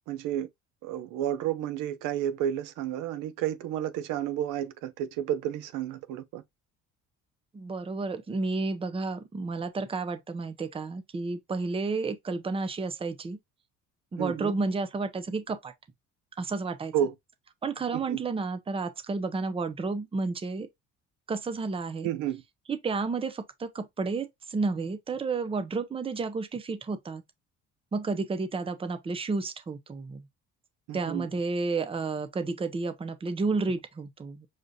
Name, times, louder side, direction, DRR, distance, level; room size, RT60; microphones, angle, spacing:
voice 1, 0.1-0.5 0.8-6.4 14.2-14.6 16.9-17.1 17.9-18.2 22.0-22.4 30.9-31.3, right 10 dB, 85° right, 0.8 m, -31 dB
voice 2, 7.5-13.4 14.1-15.7 16.4-16.9 17.6-20.7 21.3-22.1 22.7-27.2 27.9-30.2 30.9-34.5, right 3 dB, 20° right, 0.7 m, -31 dB
6.4 x 2.4 x 2.7 m
cardioid pair, 120°, 30 cm